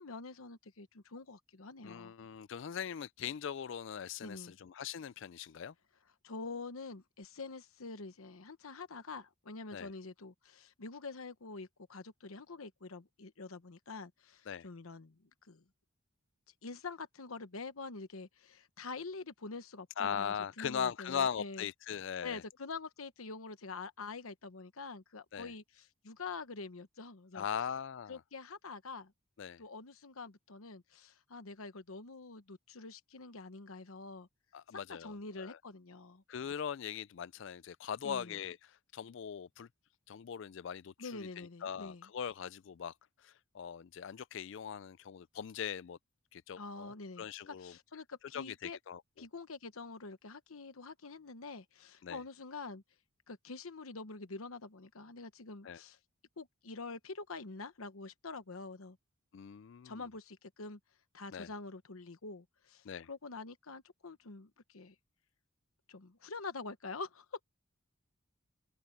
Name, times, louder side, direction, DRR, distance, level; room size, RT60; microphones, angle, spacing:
voice 1, 0.0-2.1 4.2-4.6 6.2-15.1 15.5-15.6 16.6-21.7 22.2-27.5 28.1-29.1 29.6-34.3 34.7-36.2 38.0-38.4 41.0-42.1 46.6-48.8 49.2-52.8 53.3-56.0 56.4-59.0 59.8-60.8 61.1-64.9 65.9-67.2, left 3 dB, 80° left, 1.0 m, -46 dB
voice 2, 1.8-5.7 9.7-9.9 14.5-14.7 20.0-22.4 25.3-25.5 27.3-28.2 29.4-29.6 34.5-35.6 36.3-39.7 40.1-42.9 43.2-46.0 46.3-47.7 48.3-49.0 52.0-52.2 55.6-55.8 59.3-60.0 61.3-61.5 62.8-63.1, left 8 dB, 60° left, 0.4 m, -40 dB
head